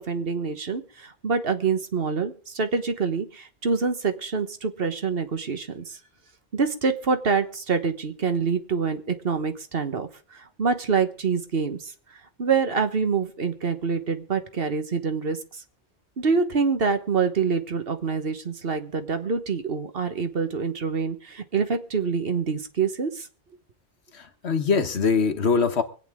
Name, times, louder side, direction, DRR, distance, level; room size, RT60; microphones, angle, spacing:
voice 1, 0.0-6.0 6.5-11.9 12.4-15.6 16.2-23.3, right 5 dB, 60° right, 1.4 m, -26 dB
voice 2, 24.1-25.8, left 5 dB, 70° left, 1.5 m, -23 dB
24.5 x 8.8 x 3.6 m
omnidirectional pair, 1.1 m